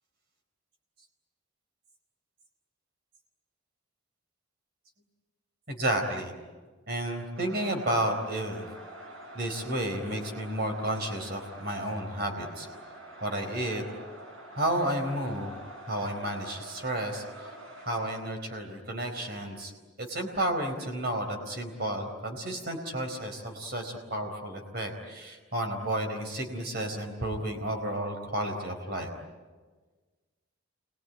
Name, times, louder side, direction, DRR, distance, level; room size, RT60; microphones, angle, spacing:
voice 1, 5.7-6.3 6.9-8.6 9.3-12.7 13.2-13.8 14.6-15.5 15.9-17.2 17.9-19.7 20.0-29.1, right 1 dB, 50° right, 4 dB, 4.3 m, -32 dB
sound 1, 7.3-18.2, right 1 dB, 80° right, 6.1 m, -46 dB
28.5 x 22.0 x 9.2 m, 1.4 s
head